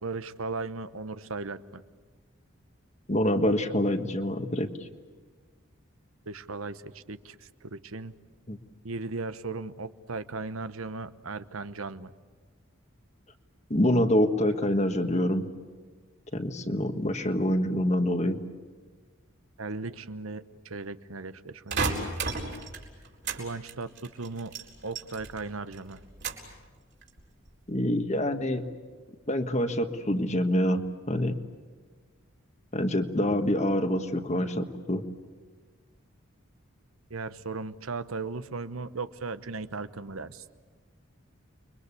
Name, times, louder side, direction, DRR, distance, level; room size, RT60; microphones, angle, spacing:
voice 1, 0.0-1.8 6.3-8.1 8.8-12.1 19.6-22.1 23.3-24.5 24.8-26.0 37.1-40.4, right 3 dB, 90° right, 13 dB, 1.1 m, -37 dB
voice 2, 3.1-4.7 8.5-8.6 13.7-15.5 16.3-18.4 27.7-28.7 29.3-30.8 31.1-31.3 32.7-35.0, left 1 dB, 35° left, 8 dB, 1.6 m, -26 dB
sound 1, 21.7-23.4 23.7-25.5 25.7-26.5 27.0-27.5, right 4 dB, 55° right, 4.3 m, -33 dB
30.0 x 23.5 x 8.4 m, 1.4 s
head